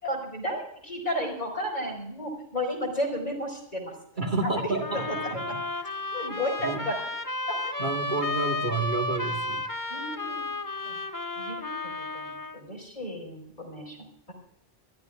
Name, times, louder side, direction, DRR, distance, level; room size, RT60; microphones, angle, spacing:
voice 1, 0.0-3.9 4.4-5.2 6.1-6.9 7.5-7.7 9.9-10.5 10.8-11.0 11.4-14.0, equal, 40° left, 0 dB, 4.7 m, -33 dB
voice 2, 4.2-5.0 5.3-5.6 6.6-6.8 7.8-9.6, right 3 dB, 50° right, 1 dB, 2.0 m, -30 dB
sound 1, 4.8-12.6, left 2 dB, 20° left, 1.1 m, -33 dB
24.5 x 13.5 x 2.5 m, 0.75 s
omnidirectional pair, 1.1 m